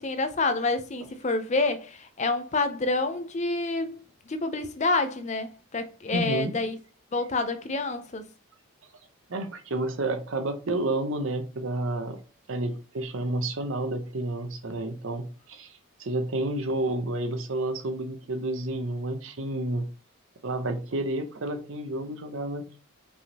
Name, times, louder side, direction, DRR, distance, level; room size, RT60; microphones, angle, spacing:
voice 1, 0.0-4.0 4.3-6.8 7.1-8.2, left 3 dB, 30° left, 0.5 m, -28 dB
voice 2, 6.1-6.5 9.3-12.2 12.5-19.9 20.4-22.8, right 2 dB, 65° right, 0.7 m, -30 dB
5.3 x 3.5 x 2.8 m
head